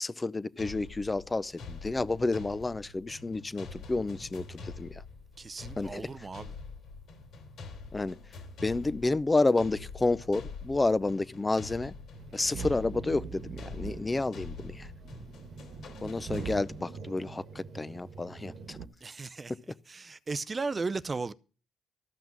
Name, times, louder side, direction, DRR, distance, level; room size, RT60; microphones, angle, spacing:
voice 1, 0.0-5.0 5.8-6.3 7.9-8.2 8.6-11.9 12.3-14.9 16.0-18.8, left 2 dB, 20° left, 0.6 m, -30 dB
sound 1, 0.6-17.0, left 4 dB, 70° left, 3.1 m, -46 dB
voice 2, 5.4-6.5 19.0-19.5 19.9-21.3, right 4 dB, 30° right, 0.5 m, -35 dB
sound 2, 12.1-18.9, right 5 dB, 65° right, 1.3 m, -43 dB
13.5 x 6.0 x 7.4 m
cardioid pair, 90°, 0 cm